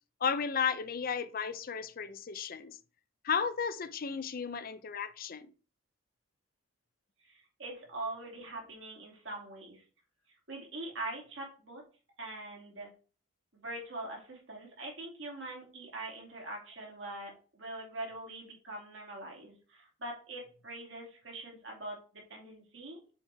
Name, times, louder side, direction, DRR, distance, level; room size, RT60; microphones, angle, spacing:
voice 1, 0.2-2.8 3.2-5.5, left 6 dB, 45° left, 0.5 m, -34 dB
voice 2, 7.2-9.8 10.5-11.8 12.2-12.9 13.5-23.1, right 2 dB, 60° right, 2.7 m, -43 dB
7.1 x 4.8 x 3.4 m
head